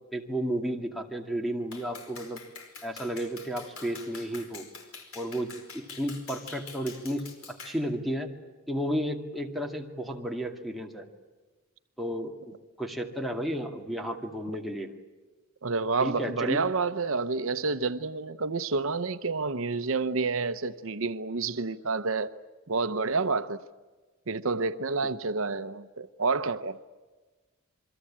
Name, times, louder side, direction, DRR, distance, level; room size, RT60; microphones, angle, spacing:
voice 1, 0.1-2.4 2.8-4.7 5.1-8.3 8.7-11.1 12.0-14.9 16.0-16.6, equal, ahead, 2.3 m, -33 dB
Clapping, 1.7-7.8, left 5 dB, 85° left, 4.7 m, -46 dB
voice 2, 15.6-22.3 22.7-23.6 24.3-26.8, right 4 dB, 70° right, 0.8 m, -29 dB
28.0 x 23.0 x 8.7 m
head